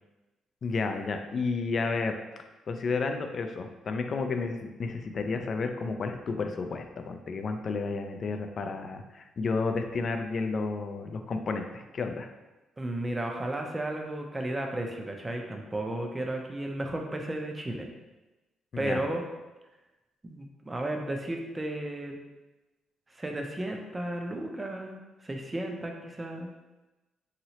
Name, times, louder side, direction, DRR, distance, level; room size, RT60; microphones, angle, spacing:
voice 1, 0.6-2.1 2.7-12.3 18.7-19.0, left 4 dB, 50° left, 6 dB, 0.4 m, -31 dB
voice 2, 12.8-17.9 18.8-19.2 20.2-22.2 23.1-26.5, right 1 dB, 20° right, 2 dB, 0.5 m, -34 dB
3.0 x 2.8 x 2.8 m, 1.1 s
cardioid pair, 90°, 0 cm